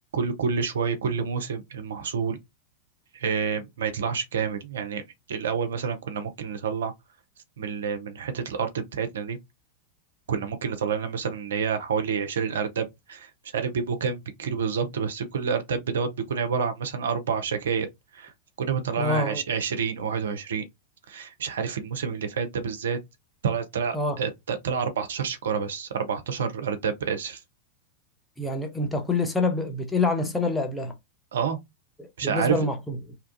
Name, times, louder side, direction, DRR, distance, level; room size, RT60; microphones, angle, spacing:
voice 1, 0.1-2.4 3.1-5.0 5.3-6.9 7.6-9.4 10.3-17.9 18.1-18.3 18.6-20.6 21.1-23.0 23.4-27.4 31.3-31.6 32.2-32.6, right 6 dB, 65° right, 0.6 m, -28 dB
voice 2, 19.0-19.4 23.9-24.2 28.4-30.9 32.0-33.0, left 2 dB, 5° left, 0.8 m, -26 dB
2.8 x 2.3 x 2.6 m
figure-of-eight pair, 90°, 0 cm